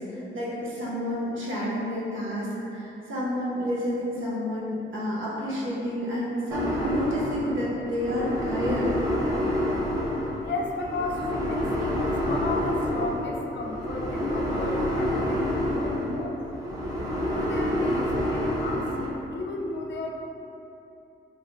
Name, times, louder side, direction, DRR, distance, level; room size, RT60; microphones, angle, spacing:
voice 1, 0.0-8.9, left 1 dB, 70° right, -6 dB, 0.8 m, -30 dB
sound 1, 6.5-19.1, left 1 dB, 15° right, 0.7 m, -28 dB
voice 2, 10.4-16.4 17.3-20.1, left 2 dB, 60° left, 0 dB, 0.4 m, -33 dB
3.1 x 2.7 x 2.6 m, 2.9 s
cardioid pair, 110°, 21 cm